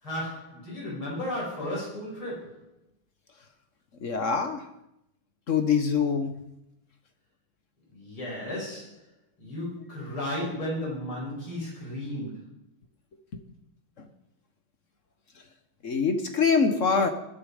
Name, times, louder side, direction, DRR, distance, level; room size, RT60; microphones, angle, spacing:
voice 1, 0.0-2.6 7.9-9.0 9.4-12.5, left 1 dB, 90° left, -5 dB, 7.3 m, -34 dB
voice 2, 4.0-4.6 5.5-6.3 15.8-17.1, left 5 dB, 45° left, 7 dB, 1.3 m, -24 dB
20.0 x 8.7 x 5.1 m, 0.82 s
omnidirectional pair, 2.2 m